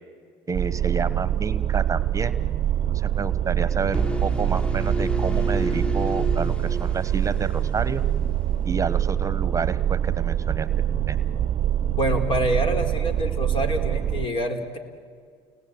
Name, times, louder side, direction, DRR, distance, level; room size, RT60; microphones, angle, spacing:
voice 1, 0.5-2.3 2.9-8.0 8.7-10.7 11.1-11.2, right 5 dB, 30° right, 15 dB, 1.1 m, -29 dB
sound 1, 0.5-14.3, right 11 dB, 50° right, 0.6 m, -25 dB
sound 2, 3.9-7.8, equal, 10° left, 1.5 m, -30 dB
voice 2, 12.0-14.8, equal, 50° left, 8 dB, 4.0 m, -26 dB
29.5 x 20.0 x 9.5 m, 2.1 s
supercardioid pair, 75°, 11 cm